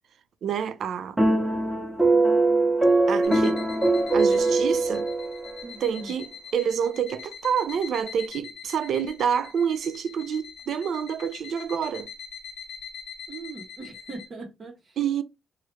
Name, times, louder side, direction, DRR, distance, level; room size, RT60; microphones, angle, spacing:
voice 1, 0.4-1.2 3.1-3.6 4.1-5.1 5.8-12.1 15.0-15.2, right 7 dB, 60° right, 0.4 m, -28 dB
sound 1, 1.2-5.6, right 2 dB, 10° right, 0.9 m, -22 dB
sound 2, 3.2-14.3, left 7 dB, 80° left, 0.6 m, -43 dB
voice 2, 5.6-6.1 13.3-15.0, right 3 dB, 45° right, 0.9 m, -40 dB
3.1 x 2.3 x 3.1 m
cardioid pair, 90°, 0 cm